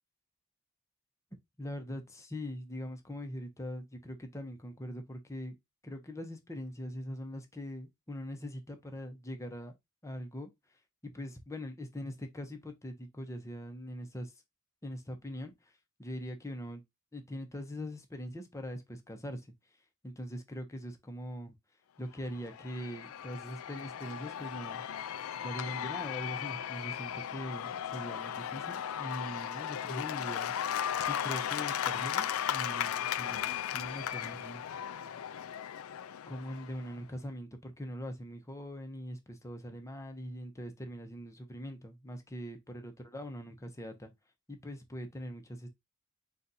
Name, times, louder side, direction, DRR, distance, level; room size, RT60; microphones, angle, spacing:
voice 1, 1.6-5.6 5.8-9.7 10.0-10.5 11.0-14.3 14.8-15.5 16.0-16.8 17.1-19.5 20.0-21.5 22.0-24.8 25.4-30.5 31.1-34.6 36.3-44.1 44.5-45.7, equal, 15° left, 0.8 m, -42 dB
Cheering / Applause / Crowd, 22.2-37.0, left 9 dB, 70° left, 0.4 m, -36 dB
4.1 x 2.4 x 4.0 m
head